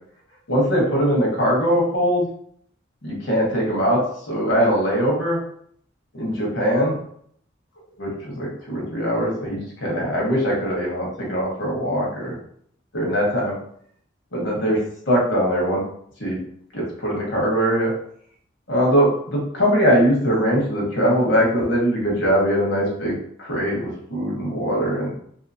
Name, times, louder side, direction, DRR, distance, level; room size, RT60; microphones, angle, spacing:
voice 1, 0.5-2.3 3.0-4.0 4.3-5.4 6.1-7.0 8.0-12.4 12.9-13.5 14.3-14.8 15.1-15.8 16.2-16.4 16.7-17.9 18.7-25.1, equal, 70° left, -3 dB, 1.1 m, -21 dB
3.1 x 2.8 x 2.6 m, 0.64 s
head